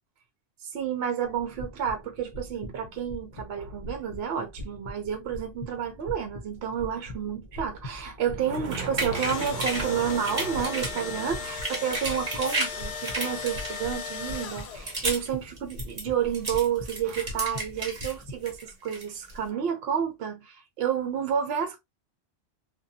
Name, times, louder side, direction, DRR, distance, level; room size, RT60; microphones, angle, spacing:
voice 1, 0.6-21.8, right 8 dB, 65° right, 0.8 m, -30 dB
sound 1, 1.2-18.6, left 1 dB, 40° left, 0.5 m, -42 dB
sound 2, 8.5-9.9 10.2-11.0 11.4-12.7 13.0-14.0 14.5-15.3 15.6-18.1 18.4-19.4, right 2 dB, 40° right, 1.1 m, -33 dB
Engine / Drill, 8.9-15.1, left 6 dB, 70° left, 0.8 m, -37 dB
2.6 x 2.3 x 2.5 m
omnidirectional pair, 1.2 m